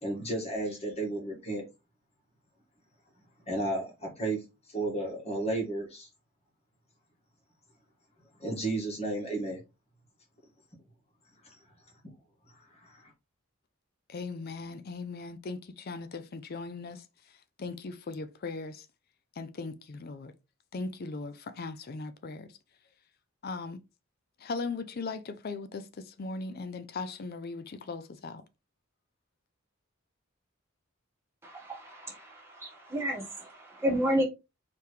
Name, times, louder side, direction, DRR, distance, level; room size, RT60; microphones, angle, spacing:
voice 1, 0.0-1.6 3.5-4.4 4.7-6.1 8.4-9.6 11.4-11.5 12.8-13.1, right 2 dB, 30° left, 1.8 m, -33 dB
voice 2, 14.1-17.0 17.6-18.8 19.4-20.3 20.7-22.5 23.4-23.8 24.4-28.4, left 3 dB, 45° left, 0.4 m, -38 dB
voice 3, 31.4-34.2, equal, 10° right, 1.6 m, -31 dB
4.6 x 3.5 x 3.2 m
head